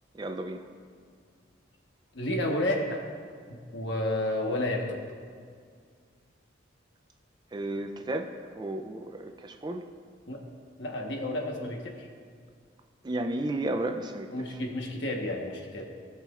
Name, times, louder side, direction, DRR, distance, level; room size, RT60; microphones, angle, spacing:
voice 1, 0.1-0.6 7.5-9.8 13.0-14.3, right 1 dB, 25° right, 6 dB, 0.4 m, -33 dB
voice 2, 2.1-3.0 3.5-5.0 10.3-10.4 10.8-12.1 14.3-15.8, left 1 dB, 65° left, 1 dB, 1.1 m, -31 dB
17.0 x 5.9 x 2.4 m, 2.1 s
head